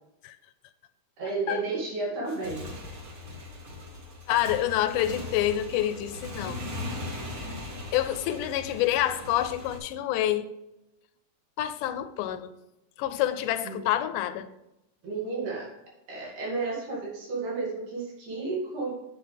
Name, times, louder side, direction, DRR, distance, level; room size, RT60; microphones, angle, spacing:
voice 1, 1.2-2.7 13.6-13.8 15.0-15.7 16.1-18.9, right 3 dB, 75° right, 3.8 m, -32 dB
Motorcycle / Engine, 2.2-9.8, left 2 dB, 50° right, 1.1 m, -39 dB
voice 2, 4.3-6.6 7.9-10.5 11.6-12.5 13.0-14.5, left 12 dB, 85° left, 2.1 m, -27 dB
9.5 x 7.4 x 3.4 m
omnidirectional pair, 3.6 m